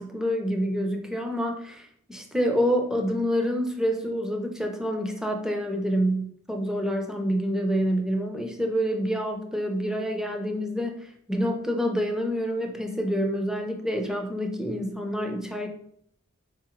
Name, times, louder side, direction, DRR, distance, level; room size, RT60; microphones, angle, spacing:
voice 1, 0.0-15.7, equal, 5° right, 2 dB, 0.4 m, -27 dB
3.7 x 3.7 x 2.9 m, 0.69 s
head